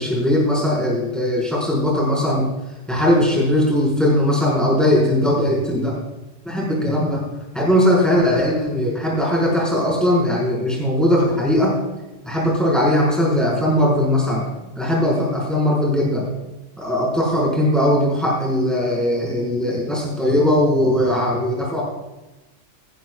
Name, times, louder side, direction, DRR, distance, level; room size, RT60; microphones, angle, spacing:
voice 1, 0.0-2.5 2.9-6.0 6.4-7.2 7.5-11.8 12.2-14.5 14.7-16.3 16.8-21.8, left 1 dB, ahead, -4 dB, 5.1 m, -19 dB
17.5 x 15.0 x 2.4 m, 1.0 s
omnidirectional pair, 1.3 m